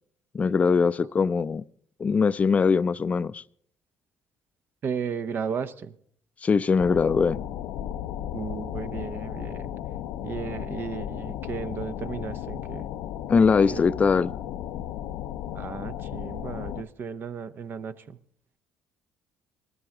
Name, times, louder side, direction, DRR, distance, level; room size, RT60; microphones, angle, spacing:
voice 1, 0.3-1.6 2.0-3.4 6.4-7.4 13.3-14.4, left 5 dB, 30° left, 0.4 m, -21 dB
voice 2, 4.8-5.9 8.3-9.7 10.2-12.8 13.4-13.8 15.5-18.2, right 6 dB, 55° right, 0.8 m, -34 dB
sound 1, 6.8-16.8, left 11 dB, 80° left, 0.6 m, -35 dB
19.0 x 14.0 x 3.7 m
supercardioid pair, 75°, 4 cm